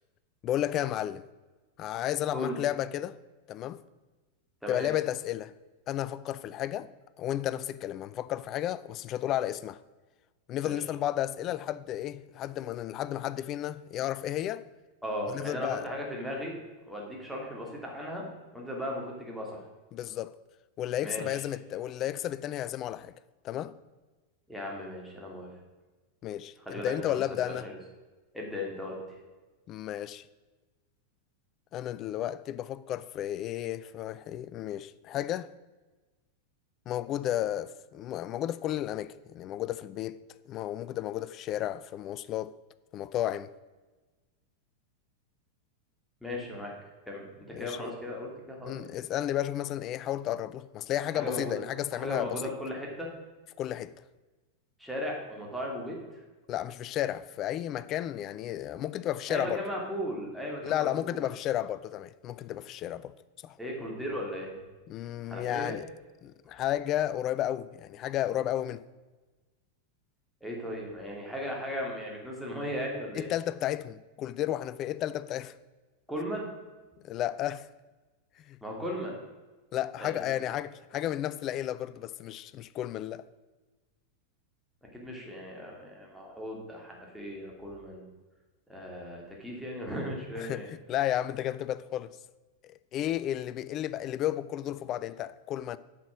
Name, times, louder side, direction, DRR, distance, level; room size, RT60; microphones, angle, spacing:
voice 1, 0.4-1.2 1.8-3.2 3.5-3.8 4.7-5.5 5.9-6.9 7.2-9.8 10.5-14.6 15.3-15.9 19.9-20.4 20.8-23.1 23.4-23.7 26.2-27.7 29.7-30.3 31.7-35.5 36.9-40.2 40.5-42.5 42.9-43.5 47.6-47.9 48.7-52.5 53.6-53.9 56.5-59.6 60.6-63.1 63.4-63.6 64.9-65.8 66.2-68.8 73.1-75.5 77.0-77.7 78.4-78.6 79.7-83.2 90.4-92.2 92.6-95.8, left 12 dB, 35° left, 0.4 m, -33 dB
voice 2, 15.0-16.5 16.9-18.2 18.5-19.7 21.0-21.4 24.5-25.5 26.7-27.8 28.3-29.2 46.2-46.7 47.1-49.0 51.1-51.6 51.9-53.1 54.8-56.2 59.3-61.2 63.6-64.6 65.3-65.8 70.4-73.3 76.1-76.5 78.6-79.2 80.0-80.4 84.8-88.0 88.7-90.7, left 1 dB, ahead, 2.5 m, -37 dB
8.2 x 6.0 x 6.3 m
figure-of-eight pair, 90°, 0 cm